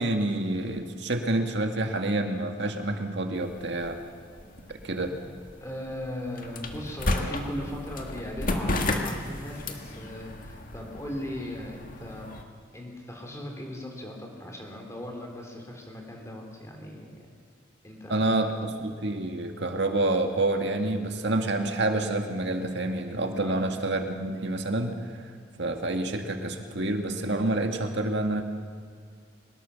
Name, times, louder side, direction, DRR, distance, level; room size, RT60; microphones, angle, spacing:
voice 1, 0.0-4.0 4.8-5.1 18.1-25.3 25.6-28.4, right 2 dB, 60° right, 5 dB, 2.0 m, -28 dB
sound 1, 3.4-12.4, left 2 dB, 45° left, 1.9 m, -34 dB
voice 2, 5.6-12.3 12.7-17.3 17.8-18.4 23.4-23.6, left 1 dB, 15° left, 1 dB, 3.3 m, -38 dB
23.0 x 19.5 x 7.0 m, 2.2 s
head